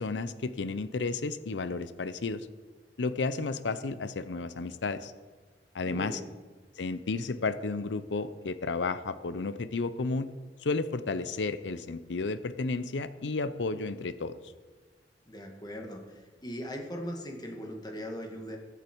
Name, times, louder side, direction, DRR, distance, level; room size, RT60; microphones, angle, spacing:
voice 1, 0.0-2.5 3.0-5.1 5.7-6.2 6.8-10.3 10.6-14.4, left 3 dB, 90° left, 13 dB, 0.6 m, -32 dB
voice 2, 5.8-6.3 15.3-18.6, equal, 25° left, 2 dB, 1.9 m, -39 dB
21.0 x 8.2 x 4.6 m, 1.4 s
head